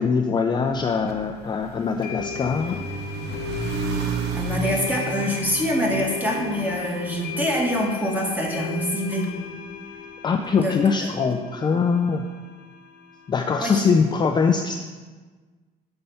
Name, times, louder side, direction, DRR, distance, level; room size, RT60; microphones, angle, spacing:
voice 1, 0.0-2.8 10.2-12.3 13.3-14.8, left 5 dB, 25° left, 4 dB, 0.4 m, -22 dB
sound 1, 0.6-8.9, right 4 dB, 80° right, 0.8 m, -33 dB
sound 2, 1.1-1.2 2.0-13.6, left 9 dB, 75° left, 0.8 m, -37 dB
voice 2, 4.3-9.3 10.6-11.1 13.6-13.8, equal, 10° right, -2 dB, 1.7 m, -25 dB
7.0 x 4.4 x 5.5 m, 1.4 s
cardioid pair, 110°, 17 cm